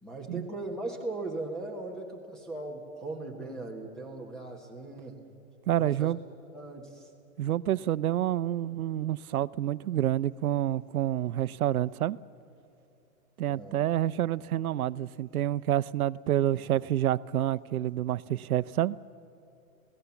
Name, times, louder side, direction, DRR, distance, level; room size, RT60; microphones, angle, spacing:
voice 1, 0.0-5.2 5.8-6.1 6.5-7.1 13.5-13.8, right 2 dB, ahead, 1.3 m, -38 dB
voice 2, 5.7-6.2 7.4-12.2 13.4-19.0, right 12 dB, 80° right, 0.7 m, -28 dB
27.0 x 17.5 x 7.1 m
hypercardioid pair, 170°, 42 cm